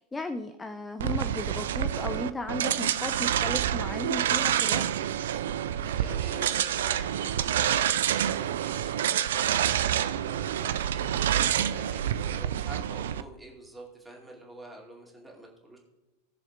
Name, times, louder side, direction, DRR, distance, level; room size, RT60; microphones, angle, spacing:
voice 1, 0.1-4.8, left 2 dB, 10° left, 7 dB, 0.5 m, -35 dB
sound 1, 1.0-13.2, right 10 dB, 60° right, 0.3 m, -27 dB
voice 2, 5.2-15.8, right 1 dB, 5° right, -3 dB, 2.3 m, -47 dB
19.0 x 6.9 x 2.3 m, 1.1 s
figure-of-eight pair, 90°, 0 cm